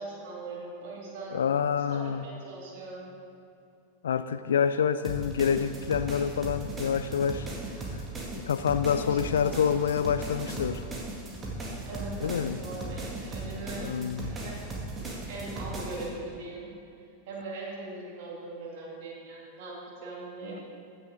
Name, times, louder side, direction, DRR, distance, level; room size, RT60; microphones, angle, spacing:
voice 1, 0.0-1.4 1.9-3.1 8.8-9.5 11.8-13.8 14.2-14.7 15.3-16.7 17.3-20.6, right 2 dB, 50° right, -4 dB, 2.2 m, -40 dB
voice 2, 1.3-2.3 4.0-7.5 8.3-10.9 12.2-12.6 13.8-14.4, left 7 dB, 65° left, 13 dB, 0.4 m, -27 dB
sound 1, 5.0-16.1, right 2 dB, 20° right, 1.9 m, -37 dB
15.0 x 6.4 x 3.9 m, 2.6 s
figure-of-eight pair, 90°, 0 cm